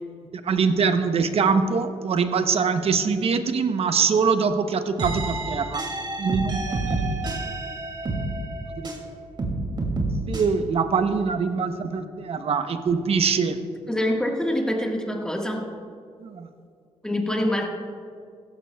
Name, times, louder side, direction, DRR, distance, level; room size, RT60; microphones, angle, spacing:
voice 1, 0.4-5.8 6.2-7.0 8.7-9.0 10.3-13.6 16.2-16.5, right 5 dB, 60° right, 9 dB, 0.8 m, -23 dB
sound 1, 5.0-9.1 9.4-10.4, right 2 dB, 40° right, 2.5 m, -28 dB
voice 2, 13.9-15.8 17.0-17.7, left 1 dB, 5° left, 1 dB, 1.5 m, -25 dB
16.5 x 13.5 x 2.3 m, 2.3 s
cardioid pair, 90°, 12 cm